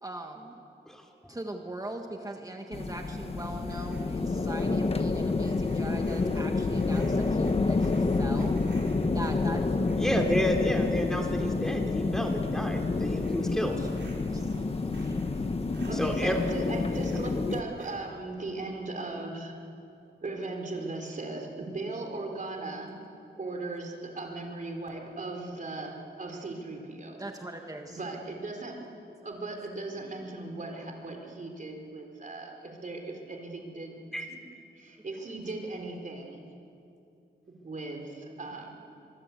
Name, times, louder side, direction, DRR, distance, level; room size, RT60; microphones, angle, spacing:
voice 1, 0.0-0.5 1.3-8.6 9.0-9.6 13.8-13.9 14.3-14.5 15.0-15.2 27.2-28.0, right 1 dB, 20° right, 3 dB, 1.5 m, -40 dB
sound 1, 2.7-17.6, left 3 dB, 30° left, 1.0 m, -28 dB
sound 2, 3.4-4.8 5.1-10.1 10.4-11.9 12.2-18.0, right 2 dB, 75° right, 6.6 m, -50 dB
voice 2, 10.0-13.7 15.9-16.5 17.0-17.1 34.1-34.2, equal, 5° left, 2 dB, 3.2 m, -30 dB
voice 3, 15.9-19.5 20.2-23.0 23.4-27.2 27.6-28.8 29.2-34.4 34.7-36.5 37.5-38.9, right 2 dB, 45° right, 2 dB, 4.1 m, -38 dB
24.5 x 23.5 x 8.4 m, 2.6 s
wide cardioid pair, 140°, 19 cm